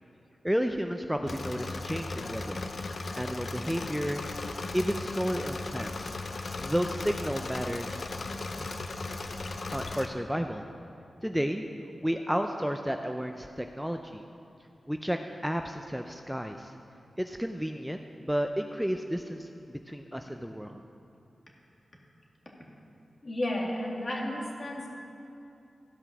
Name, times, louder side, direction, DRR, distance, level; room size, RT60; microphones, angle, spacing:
voice 1, 0.4-2.6 3.2-4.2 4.7-6.1 6.6-8.0 8.6-8.7 9.7-10.6 11.2-11.6 12.0-14.2 14.9-15.2 15.4-16.7 17.2-20.8, equal, 5° right, 5 dB, 0.5 m, -32 dB
Engine / Mechanisms, 1.3-10.1, left 3 dB, 60° left, 0.7 m, -37 dB
voice 2, 23.2-24.9, left 1 dB, 45° left, -2 dB, 2.2 m, -32 dB
14.0 x 5.6 x 6.1 m, 2.7 s
cardioid pair, 60°, 0 cm